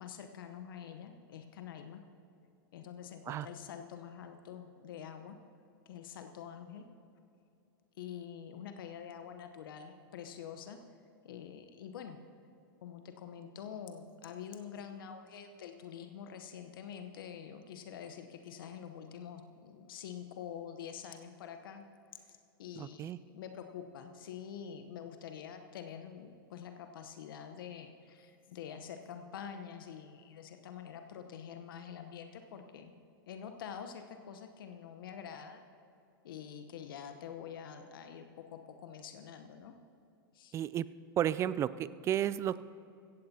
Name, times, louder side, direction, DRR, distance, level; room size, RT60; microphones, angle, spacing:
voice 1, 0.0-2.0 2.7-5.4 5.9-6.8 8.0-10.8 11.2-12.2 12.8-21.8 22.1-32.9 33.3-35.6 36.2-39.7 40.3-40.6, left 8 dB, 70° left, 7 dB, 0.9 m, -46 dB
voice 2, 22.8-23.2 40.5-40.9 41.2-42.6, right 11 dB, 25° right, 17 dB, 0.3 m, -32 dB
16.5 x 15.5 x 2.8 m, 2.6 s
hypercardioid pair, 110°, 12 cm